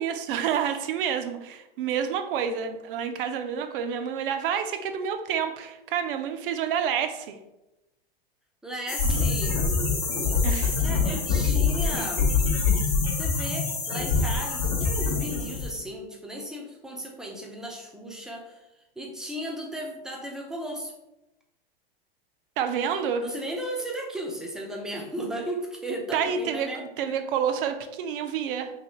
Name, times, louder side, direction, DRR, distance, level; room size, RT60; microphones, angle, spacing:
voice 1, 0.0-7.4 10.4-10.8 22.6-23.2 26.1-28.7, right 8 dB, 60° right, 8 dB, 0.5 m, -28 dB
voice 2, 8.6-9.6 10.8-12.3 13.2-18.6 19.0-20.9 23.2-26.8, right 1 dB, ahead, 0 dB, 0.5 m, -35 dB
sound 1, 8.9-15.7, left 4 dB, 55° left, 1.0 m, -25 dB
3.0 x 2.9 x 3.0 m, 0.95 s
hypercardioid pair, 110°, 30 cm